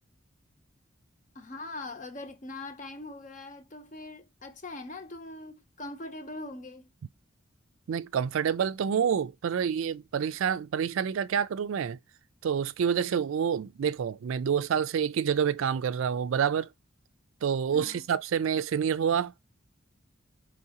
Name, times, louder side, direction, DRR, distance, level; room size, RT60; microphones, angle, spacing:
voice 1, 1.3-6.9 17.7-18.0, left 2 dB, 35° left, 0.7 m, -42 dB
voice 2, 7.9-12.0 12.4-16.7 17.4-19.3, right 7 dB, 75° right, 0.3 m, -28 dB
4.7 x 3.2 x 2.8 m
head